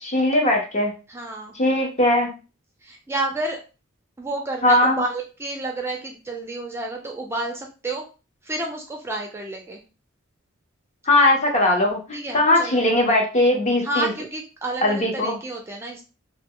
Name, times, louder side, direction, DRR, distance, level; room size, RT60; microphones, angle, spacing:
voice 1, 0.0-0.9 1.6-2.3 4.6-5.0 11.1-14.1 14.8-15.3, left 1 dB, 35° left, 1 dB, 0.7 m, -19 dB
voice 2, 1.1-1.5 2.8-3.6 4.2-8.1 8.4-9.8 12.1-12.8 13.8-16.0, right 2 dB, 10° right, 1 dB, 0.4 m, -30 dB
2.1 x 2.1 x 3.6 m, 0.32 s
head